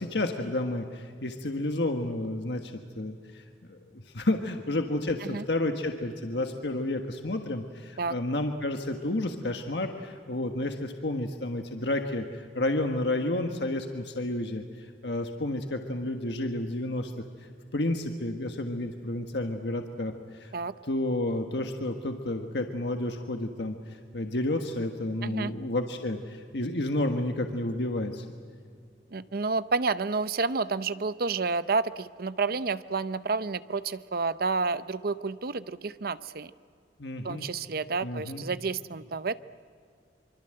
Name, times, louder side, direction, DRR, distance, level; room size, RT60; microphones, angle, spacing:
voice 1, 0.0-20.5 20.8-28.3 37.0-37.5 38.0-38.4, left 1 dB, 70° left, 5 dB, 1.5 m, -31 dB
voice 2, 25.2-25.5 29.1-36.5 37.2-39.4, right 4 dB, 55° right, 14 dB, 0.7 m, -30 dB
25.5 x 25.0 x 7.8 m, 2.2 s
head